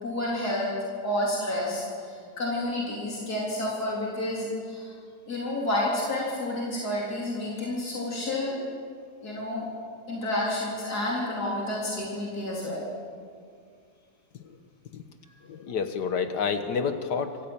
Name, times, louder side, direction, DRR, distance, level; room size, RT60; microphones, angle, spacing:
voice 1, 0.0-0.8 1.0-5.0 5.3-8.6 9.2-9.7 10.1-12.8, left 1 dB, 65° left, -5 dB, 4.3 m, -30 dB
voice 2, 15.5-17.4, left 6 dB, 85° left, 8 dB, 1.9 m, -29 dB
25.5 x 15.5 x 8.8 m, 2.2 s
omnidirectional pair, 1.8 m